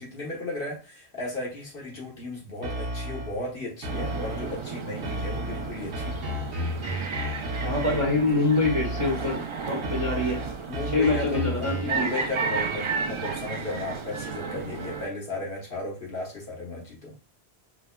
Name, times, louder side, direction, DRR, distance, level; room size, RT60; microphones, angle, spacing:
voice 1, 0.0-6.4 10.7-17.1, left 2 dB, 55° left, 1.3 m, -35 dB
sound 1, 2.6-3.4 3.8-4.6 5.0-8.2 8.6-9.4 9.8-12.0, equal, 75° right, 1.1 m, -33 dB
sound 2, 3.9-15.1, right 5 dB, 50° right, 0.3 m, -33 dB
voice 2, 7.5-10.4 10.9-12.1, left 2 dB, 30° right, 1.1 m, -25 dB
4.7 x 2.2 x 2.2 m
omnidirectional pair, 1.1 m